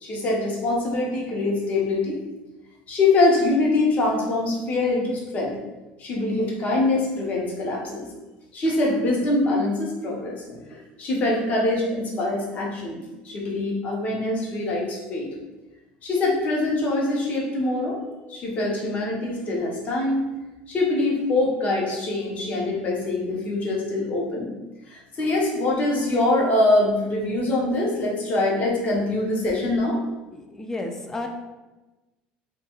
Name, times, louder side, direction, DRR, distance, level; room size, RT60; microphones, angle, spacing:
voice 1, 0.0-2.2 2.9-5.6 6.0-8.1 8.5-13.0 13.2-15.3 16.0-18.0 18.3-20.3 20.7-24.5 24.9-30.0, left 2 dB, 40° left, -2 dB, 0.7 m, -24 dB
voice 2, 30.3-31.3, left 2 dB, 15° left, 3 dB, 0.3 m, -32 dB
2.3 x 2.3 x 2.9 m, 1.1 s
supercardioid pair, 120°, 4 cm